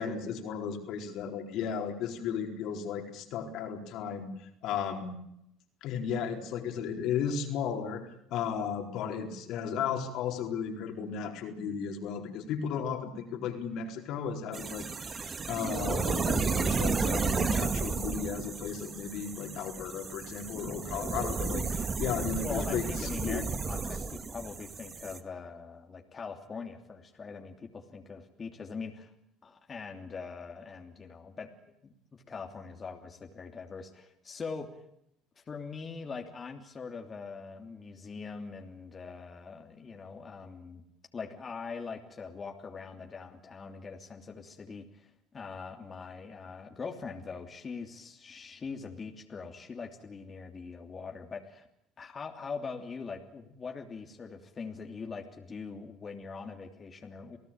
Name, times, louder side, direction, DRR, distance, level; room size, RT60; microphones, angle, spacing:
voice 1, 0.0-4.3 4.6-5.2 5.8-23.4, left 7 dB, 65° left, 3 dB, 4.4 m, -35 dB
sound 1, 14.5-25.2, right 4 dB, 30° right, 2.1 m, -32 dB
voice 2, 22.4-29.1 29.4-31.5 31.8-34.8 35.4-40.8 41.1-51.7 52.0-57.4, left 5 dB, 30° left, 3 dB, 3.1 m, -42 dB
28.5 x 17.0 x 9.0 m, 0.77 s
supercardioid pair, 85°, 0 cm